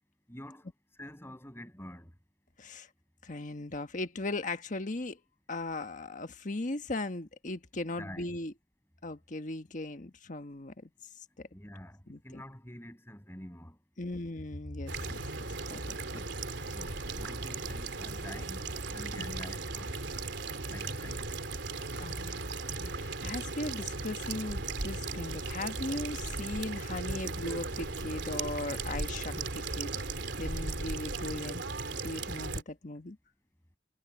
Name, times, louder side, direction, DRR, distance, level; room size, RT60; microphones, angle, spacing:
voice 1, 0.3-0.7 1.0-2.1 8.0-8.3 11.5-13.8 16.7-19.9 20.7-21.3, left 1 dB, 15° left, 7.9 m, -47 dB
voice 2, 3.2-5.2 5.5-8.5 9.0-10.7 12.1-12.2 14.0-15.2 15.7-16.2 16.6-16.7 19.1-19.4 22.0-22.5 22.8-29.9 30.4-31.7 32.0-33.2, left 2 dB, 45° left, 1.4 m, -38 dB
sound 1, 14.9-32.6, right 3 dB, 85° right, 2.9 m, -37 dB
head